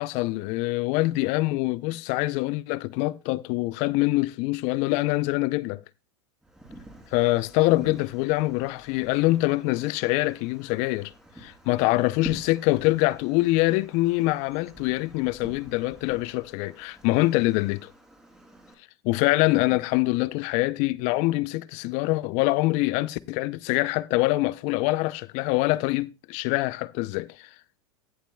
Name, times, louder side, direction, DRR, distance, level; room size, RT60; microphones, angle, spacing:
voice 1, 0.0-5.8 7.1-11.1 11.4-17.9 19.0-27.5, left 20 dB, 55° left, 0.6 m, -24 dB
Wind, 6.4-18.7, right 1 dB, 5° right, 3.1 m, -48 dB
17.0 x 7.4 x 2.3 m
hypercardioid pair, 105°, 15 cm